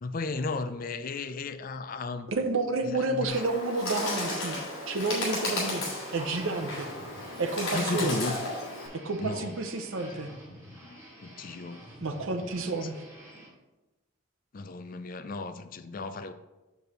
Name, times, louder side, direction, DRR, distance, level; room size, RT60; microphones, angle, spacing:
voice 1, 0.0-2.3 2.9-3.4 7.7-8.3 9.2-9.6 11.2-11.9 12.8-12.9 14.5-16.3, left 3 dB, 40° left, 0.4 m, -34 dB
voice 2, 2.3-4.6 4.9-5.8 6.1-6.9 7.4-8.2 8.9-10.3 12.0-13.0, right 3 dB, 75° right, 0.7 m, -30 dB
Bird, 3.3-8.9, left 2 dB, 70° left, 2.8 m, -34 dB
sound 1, 5.5-13.5, equal, 15° right, 2.6 m, -49 dB
6.9 x 6.1 x 4.1 m
head